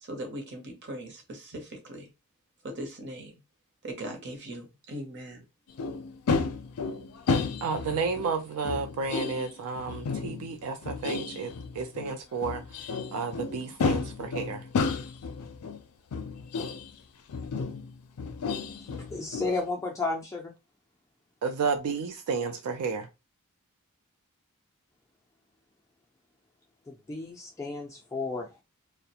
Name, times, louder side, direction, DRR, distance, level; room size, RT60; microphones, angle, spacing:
voice 1, 0.0-2.1 2.6-3.3 3.8-5.4, right 1 dB, 50° right, 0.7 m, -39 dB
sound 1, 5.8-8.3 8.6-12.2 12.4-15.8 16.1-16.9 17.3-19.6, left 4 dB, 90° left, 0.4 m, -32 dB
voice 2, 7.6-14.6 21.4-23.1, right 5 dB, 80° right, 0.4 m, -32 dB
voice 3, 18.7-20.5 26.9-28.6, left 3 dB, 15° left, 0.3 m, -33 dB
2.3 x 2.1 x 2.7 m
head